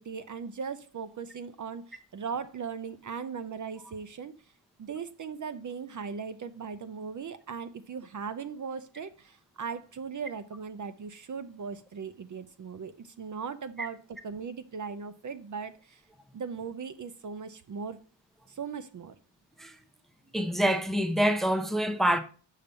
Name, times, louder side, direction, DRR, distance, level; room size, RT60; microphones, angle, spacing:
voice 1, 0.0-4.3 4.8-14.0 14.2-16.0 16.3-18.0 18.5-19.1, right 6 dB, 45° right, 0.6 m, -38 dB
voice 2, 20.3-22.2, equal, ahead, 0.7 m, -26 dB
6.6 x 5.3 x 5.5 m
wide cardioid pair, 120°, 43 cm